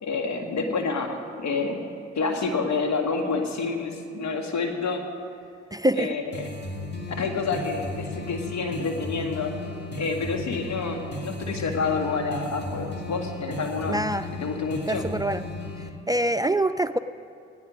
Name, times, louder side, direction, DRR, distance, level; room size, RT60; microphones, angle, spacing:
voice 1, 0.0-1.9 2.2-5.1 6.0-6.5 7.2-9.5 9.9-14.0 14.3-15.1, left 4 dB, 65° left, 4 dB, 1.9 m, -28 dB
voice 2, 5.7-6.1 13.9-14.3 14.9-15.4 16.1-17.0, right 1 dB, 15° right, 10 dB, 0.4 m, -24 dB
sound 1, 6.3-15.9, left 2 dB, 35° left, 2.2 m, -35 dB
17.0 x 10.5 x 5.1 m, 2.4 s
hypercardioid pair, 40°, 30 cm